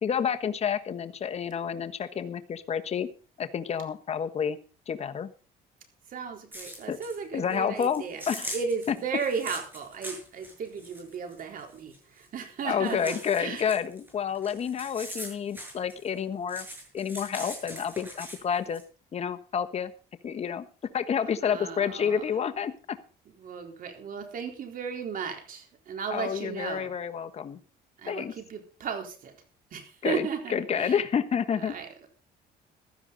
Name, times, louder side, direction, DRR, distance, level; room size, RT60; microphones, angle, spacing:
voice 1, 0.0-3.1 3.4-4.6 4.9-5.3 6.9-7.0 7.3-8.5 12.6-16.7 16.9-18.8 19.1-19.9 20.2-20.6 20.9-23.0 26.1-27.6 28.1-28.3 30.0-31.7, left 7 dB, 40° left, 9 dB, 1.2 m, -29 dB
voice 2, 6.1-8.2 8.5-13.7 21.4-22.2 23.4-26.9 28.0-29.4 29.7-31.0 31.6-32.1, right 6 dB, 55° right, 5 dB, 4.0 m, -35 dB
sound 1, 6.5-7.2 7.5-12.4 12.7-16.2 16.5-18.8, equal, 10° right, 7.3 m, -42 dB
16.0 x 12.5 x 4.0 m, 0.36 s
cardioid pair, 110°, 17 cm